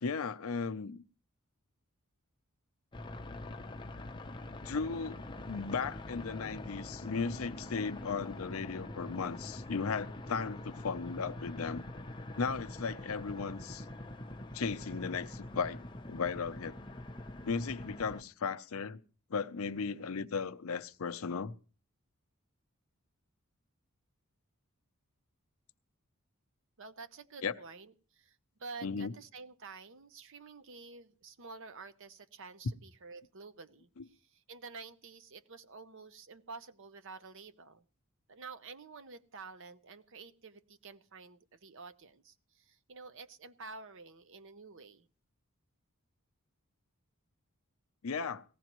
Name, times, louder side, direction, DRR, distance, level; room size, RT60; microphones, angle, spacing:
voice 1, 0.0-1.0 4.6-11.8 12.4-13.8 14.5-15.8 16.1-16.8 17.4-19.0 19.3-21.5 27.4-27.5 28.8-29.1 34.0-34.1 48.0-48.4, left 5 dB, 70° left, 0.6 m, -36 dB
sound 1, 2.9-18.2, left 1 dB, 20° left, 0.8 m, -44 dB
voice 2, 26.8-37.8 38.3-45.1, right 4 dB, 60° right, 0.8 m, -50 dB
19.0 x 15.0 x 3.0 m
head